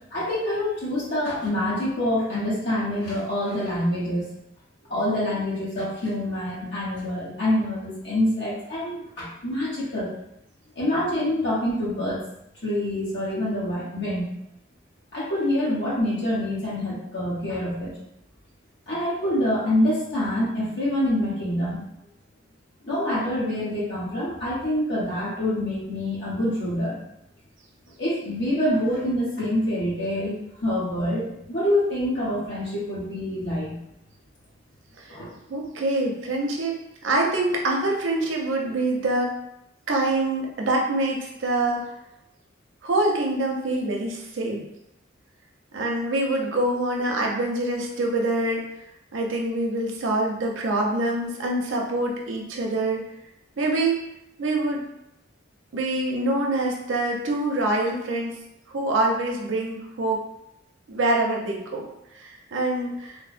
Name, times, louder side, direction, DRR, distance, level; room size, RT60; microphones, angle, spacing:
voice 1, 0.1-4.3 4.9-10.1 10.8-12.2 12.6-14.3 15.1-17.9 18.9-21.8 22.8-27.0 28.0-30.3 30.6-33.8 35.1-35.3, left 1 dB, 60° left, -7 dB, 1.1 m, -26 dB
voice 2, 35.5-39.3 39.9-41.9 42.8-44.6 45.7-48.6 49.1-53.0 53.6-54.1 54.4-54.8 55.7-58.4 58.7-60.2 60.9-61.9 62.1-63.2, right 2 dB, 75° right, 0 dB, 0.5 m, -25 dB
3.1 x 2.0 x 2.5 m, 0.84 s
head